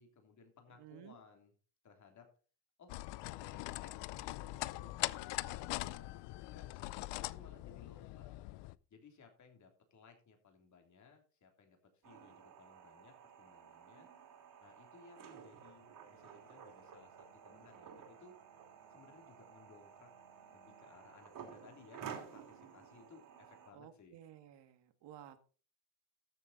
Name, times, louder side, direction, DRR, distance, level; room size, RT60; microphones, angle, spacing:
voice 1, 0.0-1.5 1.8-2.3 2.8-2.9 3.3-6.7 7.1-8.3 8.9-14.1 14.6-18.3 18.9-20.1 20.5-24.2, left 5 dB, 40° left, 4 dB, 3.1 m, -61 dB
voice 2, 0.8-1.2 23.7-25.4, right 11 dB, 70° right, 10 dB, 1.7 m, -55 dB
sound 1, 2.9-8.7, left 19 dB, 75° left, 0.6 m, -42 dB
sound 2, 12.0-23.7, right 7 dB, 50° right, 2.9 m, -53 dB
13.5 x 7.2 x 4.0 m, 0.38 s
cardioid pair, 135°, 43 cm